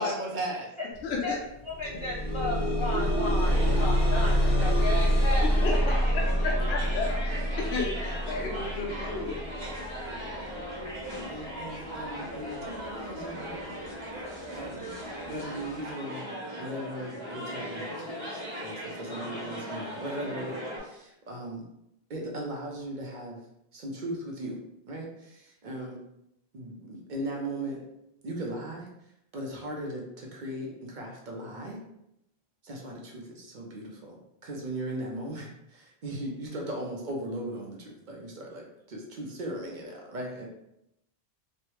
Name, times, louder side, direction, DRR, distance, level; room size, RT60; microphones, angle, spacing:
voice 1, 0.0-0.7 11.3-13.7 14.5-14.9 15.3-21.6 22.1-23.4 23.7-24.6 24.9-26.0 26.5-27.8 28.2-28.9 29.3-31.8 32.6-34.2 34.4-40.5, right 1 dB, 55° right, 0 dB, 0.7 m, -37 dB
voice 2, 1.0-1.4 5.6-5.7 6.4-9.4, left 4 dB, 75° left, -3 dB, 0.8 m, -33 dB
sound 1, 1.0-1.1 1.5-12.5 13.3-13.4 13.8-13.9, equal, 25° right, 0.8 m, -27 dB
voice 3, 1.6-6.5, left 2 dB, 50° left, -4 dB, 0.3 m, -34 dB
sound 2, 3.4-20.8, equal, 70° right, 1.2 m, -38 dB
3.2 x 2.1 x 2.9 m, 0.82 s
omnidirectional pair, 1.1 m